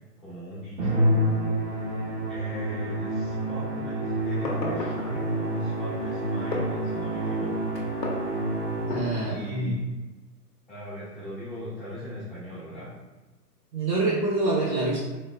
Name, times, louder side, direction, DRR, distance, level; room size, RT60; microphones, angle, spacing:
voice 1, 0.2-1.1 2.3-7.7 9.3-9.8 10.7-12.9, equal, 5° left, -26 dB, 0.4 m, -39 dB
Musical instrument, 0.8-9.3, right 1 dB, 50° right, 1.0 m, -28 dB
Fireworks, 4.2-9.5, left 2 dB, 90° left, 0.7 m, -37 dB
voice 2, 8.9-9.7 13.7-15.0, right 2 dB, 85° right, -6 dB, 0.9 m, -26 dB
3.8 x 2.1 x 2.4 m, 1.2 s
figure-of-eight pair, 120°, 48 cm